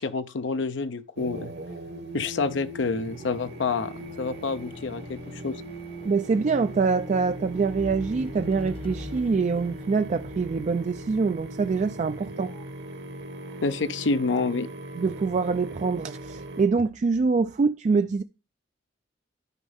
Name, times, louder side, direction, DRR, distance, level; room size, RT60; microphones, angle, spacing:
voice 1, 0.0-1.5 2.1-5.6 13.6-14.7, left 4 dB, 80° left, 0.6 m, -28 dB
sound 1, 1.2-16.7, right 1 dB, 60° right, 1.3 m, -39 dB
sound 2, 3.1-12.6 13.4-13.5, left 1 dB, 30° left, 0.6 m, -45 dB
voice 2, 6.0-12.5 15.0-18.2, right 4 dB, 40° right, 0.3 m, -25 dB
12.0 x 5.3 x 3.5 m
head